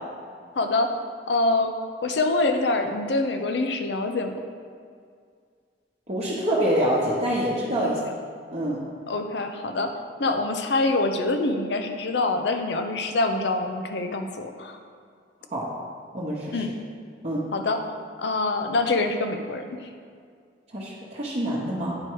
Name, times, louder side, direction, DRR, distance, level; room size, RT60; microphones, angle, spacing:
voice 1, 0.6-0.9 1.3-1.7 2.0-4.3 7.8-7.9 9.1-9.9 10.2-14.8 16.5-16.7 17.5-17.8 18.2-19.6, left 2 dB, 70° left, 6 dB, 0.6 m, -25 dB
voice 2, 6.1-8.0 8.5-8.8 15.5-15.7 16.1-16.6 17.2-17.5 20.7-22.0, equal, 40° right, -6 dB, 1.0 m, -26 dB
9.6 x 4.5 x 4.6 m, 2.2 s
head